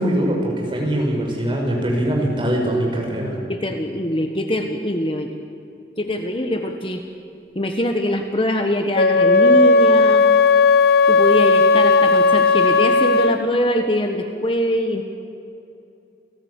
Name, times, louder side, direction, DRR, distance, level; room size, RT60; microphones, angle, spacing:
voice 1, 0.0-3.4, right 1 dB, 30° right, -1 dB, 5.9 m, -22 dB
voice 2, 3.5-5.4 6.0-7.0 7.5-10.3 11.1-15.0, left 1 dB, 30° left, 5 dB, 1.4 m, -23 dB
Wind instrument woodwind instrument, 8.9-13.4, left 4 dB, 55° left, 1.0 m, -15 dB
28.5 x 17.5 x 8.3 m, 2.7 s
head